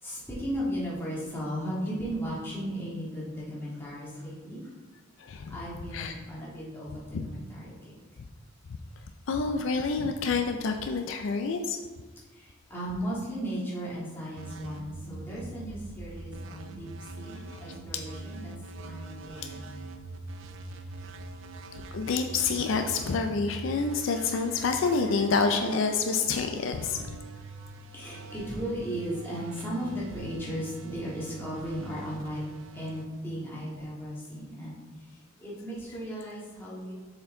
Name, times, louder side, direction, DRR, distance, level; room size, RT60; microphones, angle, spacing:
voice 1, 0.0-4.7 5.5-7.9 12.3-16.9 17.2-19.7 27.9-32.4 32.7-36.9, equal, 10° left, -7 dB, 1.8 m, -36 dB
voice 2, 5.2-5.6 5.9-6.1 7.1-7.3 9.3-11.8 19.3-19.5 21.9-27.0, left 4 dB, 70° left, 5 dB, 0.4 m, -28 dB
sound 1, 14.4-33.9, right 3 dB, 65° right, 0.5 m, -44 dB
6.8 x 4.5 x 3.8 m, 1.3 s
head